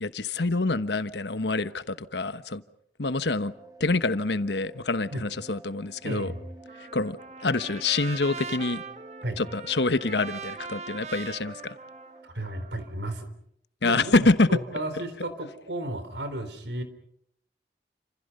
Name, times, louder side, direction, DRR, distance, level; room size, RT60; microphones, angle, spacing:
voice 1, 0.0-2.6 3.0-3.5 3.8-6.3 6.9-7.2 7.4-8.8 9.4-11.8 13.8-14.5, left 3 dB, 80° left, 1.2 m, -26 dB
sound 1, 3.4-12.3, right 2 dB, 20° right, 2.2 m, -49 dB
voice 2, 6.0-6.4 9.2-9.4 12.2-13.3 13.8-16.8, right 1 dB, 85° right, 3.9 m, -33 dB
Trumpet, 6.7-12.9, right 5 dB, 40° right, 1.1 m, -41 dB
29.5 x 27.5 x 5.4 m
head